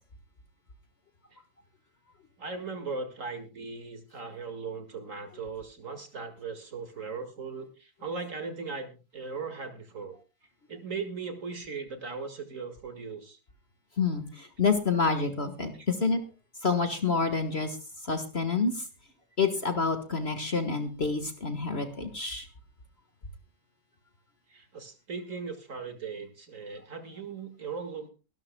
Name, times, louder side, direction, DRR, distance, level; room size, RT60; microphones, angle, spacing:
voice 1, 2.4-10.2 10.7-13.4 15.7-15.9 24.5-28.1, right 4 dB, 45° right, 7 dB, 2.2 m, -38 dB
voice 2, 14.0-16.2 16.6-17.8 18.0-18.8 19.4-22.5, left 4 dB, 35° left, 8 dB, 1.7 m, -28 dB
23.5 x 12.5 x 2.2 m, 0.30 s
omnidirectional pair, 1.9 m